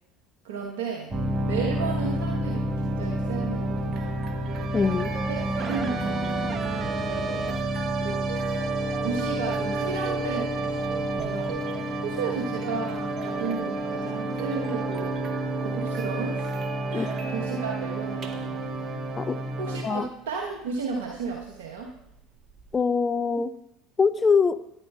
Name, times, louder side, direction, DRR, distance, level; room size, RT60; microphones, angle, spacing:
voice 1, 0.4-1.1 1.5-4.1 4.9-7.6 8.0-8.3 9.0-15.1 15.6-16.6 16.9-19.0 19.6-21.9, right 5 dB, 75° right, 1.0 m, -34 dB
sound 1, 1.1-19.8, right 2 dB, 30° right, 1.1 m, -29 dB
sound 2, 3.6-22.7, right 3 dB, 45° right, 1.2 m, -41 dB
voice 2, 4.7-5.1 16.9-17.1 19.2-19.4 19.8-20.0 22.7-23.5 24.0-24.6, left 5 dB, 25° left, 0.5 m, -23 dB
13.5 x 9.8 x 2.3 m
figure-of-eight pair, 65°, 0 cm